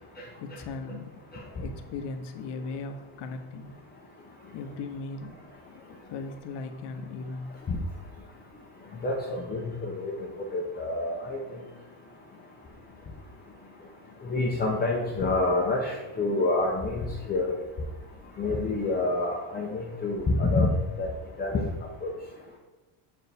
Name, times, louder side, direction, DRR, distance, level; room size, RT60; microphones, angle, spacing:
voice 1, 0.4-1.1 1.5-3.7 4.5-7.6, left 3 dB, 55° left, 7 dB, 0.8 m, -38 dB
voice 2, 9.0-10.1 10.5-11.4 14.3-17.0 17.3-17.5 18.4-20.7 21.0-21.1 21.4-21.7 22.0-22.1, left 2 dB, 20° left, -2 dB, 0.6 m, -27 dB
7.4 x 4.7 x 3.4 m, 1.1 s
cardioid pair, 140°, 49 cm